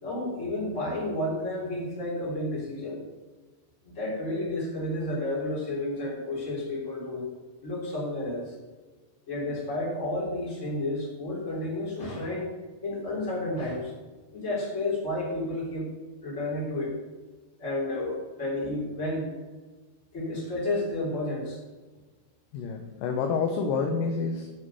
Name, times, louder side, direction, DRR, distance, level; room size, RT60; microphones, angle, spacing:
voice 1, 0.0-3.0 3.8-7.3 7.6-8.5 9.3-12.5 12.8-13.9 14.3-15.9 16.2-16.9 17.6-19.3 20.1-21.6, left 1 dB, 20° left, -4 dB, 3.4 m, -31 dB
voice 2, 22.5-24.5, left 5 dB, 75° left, 4 dB, 2.2 m, -28 dB
9.1 x 7.1 x 6.7 m, 1.3 s
omnidirectional pair, 4.8 m